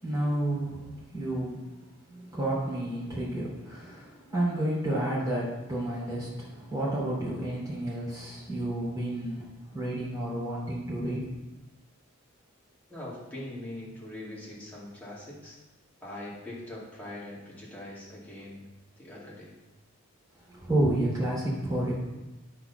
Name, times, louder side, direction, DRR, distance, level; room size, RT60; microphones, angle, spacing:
voice 1, 0.0-1.7 2.1-9.5 9.7-11.3 20.5-21.9, right 1 dB, 15° right, -6 dB, 2.8 m, -30 dB
voice 2, 12.9-15.6 16.0-18.7 19.0-19.5, left 1 dB, 5° left, -8 dB, 2.4 m, -42 dB
9.7 x 4.4 x 5.7 m, 1.1 s
head